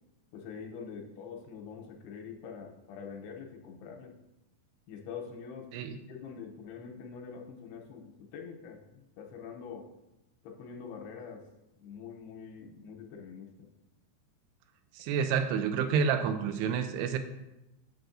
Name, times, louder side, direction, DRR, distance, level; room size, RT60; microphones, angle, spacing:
voice 1, 0.3-4.2 4.9-5.7 6.1-9.9 10.4-11.5 11.8-13.5, left 6 dB, 85° left, 2 dB, 2.6 m, -45 dB
voice 2, 14.9-17.2, right 7 dB, 85° right, 8 dB, 2.6 m, -29 dB
7.7 x 7.4 x 2.5 m, 0.93 s
omnidirectional pair, 4.8 m